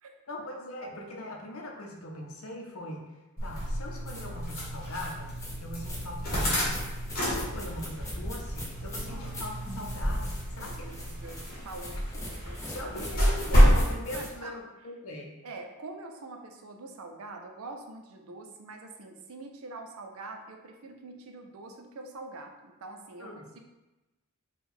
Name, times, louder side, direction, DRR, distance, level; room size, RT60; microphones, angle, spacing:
voice 1, 0.3-3.2 3.4-5.3 5.6-11.1 12.6-15.4 23.2-23.5, left 1 dB, 70° left, 1 dB, 0.7 m, -41 dB
sound 1, 3.4-13.8, equal, 40° left, 1.3 m, -28 dB
sound 2, 4.1-14.3, equal, 15° left, 0.6 m, -42 dB
voice 2, 10.6-11.4 11.6-13.2 14.1-14.5 15.4-23.6, right 3 dB, 70° right, 4 dB, 0.5 m, -45 dB
3.8 x 2.3 x 4.3 m, 1.1 s
head